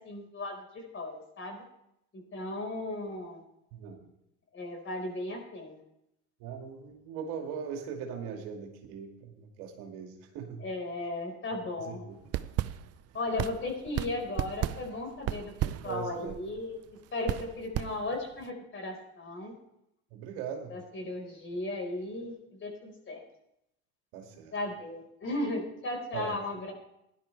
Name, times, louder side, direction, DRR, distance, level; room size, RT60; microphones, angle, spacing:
voice 1, 0.0-1.6 2.3-3.4 4.5-5.8 10.6-12.0 13.1-16.8 17.1-19.5 20.7-23.2 24.5-26.7, left 2 dB, 35° left, 2 dB, 4.7 m, -36 dB
voice 2, 3.7-4.0 6.4-10.7 11.8-12.2 15.8-16.4 20.1-20.8 24.1-24.5 26.1-26.4, right 6 dB, 75° right, 2 dB, 2.4 m, -40 dB
sound 1, 12.2-18.5, right 13 dB, 45° right, 0.6 m, -35 dB
16.5 x 11.0 x 3.4 m, 0.80 s
supercardioid pair, 90°, 34 cm